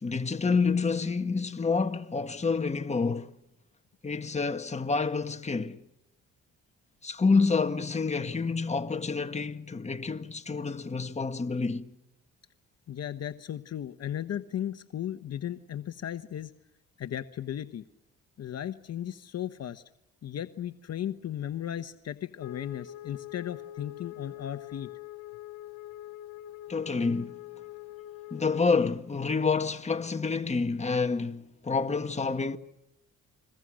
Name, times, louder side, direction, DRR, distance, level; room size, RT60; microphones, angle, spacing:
voice 1, 0.0-3.3 4.0-5.8 7.0-11.9 26.7-27.3 28.3-32.6, left 4 dB, 20° left, 1.8 m, -28 dB
voice 2, 12.9-16.5 17.0-17.8 18.4-19.8 20.2-24.9, left 10 dB, 55° left, 1.1 m, -36 dB
Wind instrument woodwind instrument, 22.4-28.8, left 15 dB, 90° left, 1.0 m, -44 dB
30.0 x 22.5 x 6.4 m
cardioid pair, 90°, 30 cm